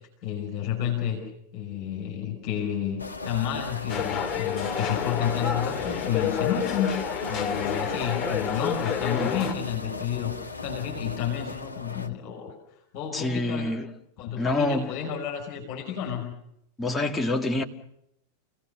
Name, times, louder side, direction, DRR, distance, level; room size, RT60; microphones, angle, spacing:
voice 1, 0.2-1.2 1.5-6.9 7.3-12.5 12.9-13.7 14.2-16.3, left 9 dB, 45° left, 5.2 m, -30 dB
sound 1, 3.0-12.1, left 3 dB, 80° left, 1.0 m, -37 dB
sound 2, 3.9-9.5, left 7 dB, 25° left, 2.3 m, -29 dB
voice 2, 9.1-9.5 13.1-13.9 14.4-15.0 16.8-17.6, left 2 dB, 10° left, 2.0 m, -27 dB
29.0 x 17.5 x 6.8 m
figure-of-eight pair, 90°, 0 cm